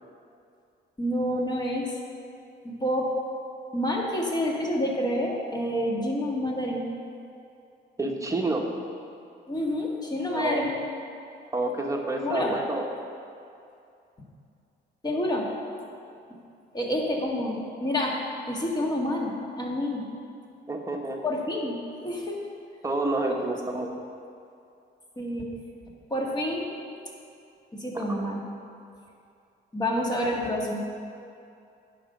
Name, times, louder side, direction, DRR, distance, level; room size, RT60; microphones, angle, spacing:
voice 1, 1.0-1.9 2.6-3.1 3.7-6.9 9.5-10.7 12.2-12.6 15.0-15.5 16.7-18.2 18.5-20.1 21.2-22.4 23.3-23.4 25.2-25.5 26.1-26.8 27.7-28.4 29.7-30.8, left 1 dB, 20° left, -1 dB, 1.8 m, -28 dB
voice 2, 8.0-8.6 10.3-10.6 11.5-12.8 20.7-21.2 22.8-23.9 27.9-28.0, right 2 dB, 15° right, 1 dB, 1.2 m, -28 dB
9.7 x 5.3 x 6.6 m, 2.5 s
cardioid pair, 90°, 20 cm